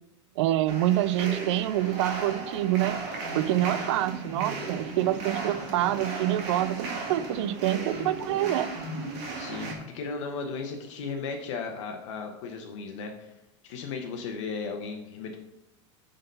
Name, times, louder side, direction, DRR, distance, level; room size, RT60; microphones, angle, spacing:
voice 1, 0.4-3.0 3.3-8.7, right 13 dB, 65° right, 16 dB, 0.4 m, -26 dB
sound 1, 0.7-9.7, right 3 dB, 40° right, 1.8 m, -36 dB
voice 2, 9.4-13.3 13.6-15.4, left 4 dB, 70° left, 3 dB, 0.9 m, -36 dB
7.8 x 4.0 x 5.4 m, 0.90 s
supercardioid pair, 175°, 16 cm